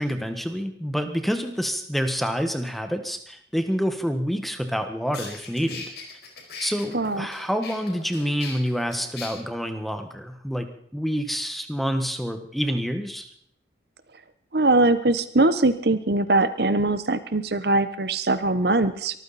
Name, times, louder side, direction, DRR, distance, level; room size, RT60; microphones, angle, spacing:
voice 1, 0.0-5.9 6.6-13.3, equal, ahead, 7 dB, 1.3 m, -27 dB
sound 1, 4.7-4.8 5.1-9.3, left 4 dB, 60° left, 4.7 m, -39 dB
voice 2, 6.9-7.3 14.5-19.2, right 2 dB, 60° right, 12 dB, 1.0 m, -21 dB
23.5 x 14.5 x 4.2 m, 0.64 s
head